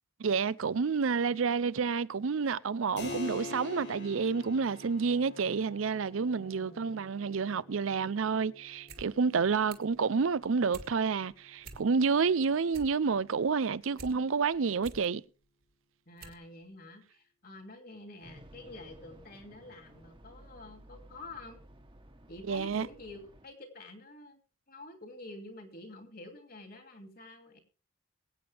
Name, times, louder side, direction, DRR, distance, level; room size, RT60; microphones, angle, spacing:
voice 1, 0.2-15.2 22.5-22.9, right 5 dB, 80° right, 0.5 m, -29 dB
Keyboard (musical), 3.0-13.2, left 2 dB, 65° left, 5.2 m, -47 dB
voice 2, 6.4-7.1 16.1-21.6 22.3-24.4 24.7-27.6, left 2 dB, 50° left, 2.7 m, -48 dB
sound 1, 8.7-9.1 9.4-10.0 10.4-10.9 11.3-11.4 11.6-12.2 12.5-14.1 14.5-15.1 15.6-15.7 16.2-16.4 16.7-16.8, right 3 dB, 50° right, 1.9 m, -48 dB
sound 2, 18.2-23.5, right 1 dB, 25° right, 1.3 m, -55 dB
22.5 x 8.7 x 3.4 m
head